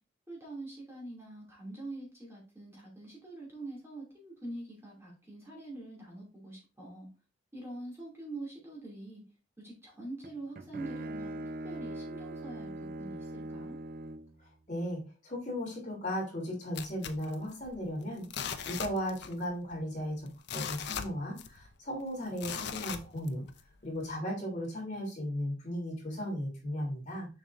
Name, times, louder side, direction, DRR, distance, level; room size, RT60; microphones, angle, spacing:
voice 1, 0.3-7.1 7.5-9.2 9.6-13.8, right 2 dB, 15° right, -4 dB, 2.7 m, -44 dB
Bowed string instrument, 10.2-14.4, right 1 dB, 45° right, 0.7 m, -41 dB
voice 2, 14.7-18.2 18.6-23.4 23.8-27.3, equal, 35° left, -2 dB, 3.2 m, -36 dB
sound 1, 16.7-17.9 18.2-19.4 19.7-19.8 20.3-21.7 22.4-23.6 24.1-24.2, left 7 dB, 55° left, 0.6 m, -39 dB
7.2 x 6.1 x 2.6 m, 0.33 s
head